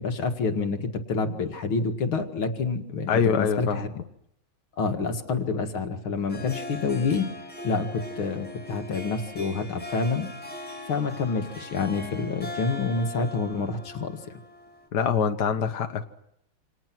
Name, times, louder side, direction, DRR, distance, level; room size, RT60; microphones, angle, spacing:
voice 1, 0.0-3.9 4.8-7.3 7.6-10.3 10.9-14.2, left 4 dB, 75° left, 5 dB, 2.7 m, -28 dB
voice 2, 3.1-3.8 14.9-16.0, left 6 dB, 55° left, 6 dB, 1.7 m, -24 dB
Harp, 6.1-14.9, left 1 dB, 5° left, 4.7 m, -40 dB
28.5 x 27.0 x 6.1 m, 0.76 s
omnidirectional pair, 2.3 m